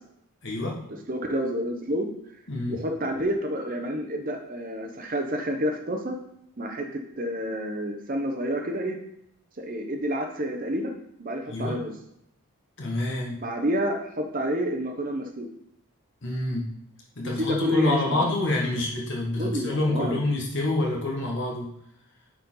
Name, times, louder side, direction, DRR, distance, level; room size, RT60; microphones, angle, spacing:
voice 1, 0.4-0.8 2.5-2.8 11.5-11.8 12.8-13.4 16.2-16.7 17.1-21.7, left 2 dB, 55° left, -2 dB, 1.4 m, -27 dB
voice 2, 1.1-2.1 2.7-6.2 6.6-9.0 9.6-10.9 11.2-11.9 13.4-15.5 17.2-18.4 19.4-20.2, equal, 40° right, 4 dB, 0.8 m, -29 dB
9.4 x 4.3 x 3.9 m, 0.75 s
head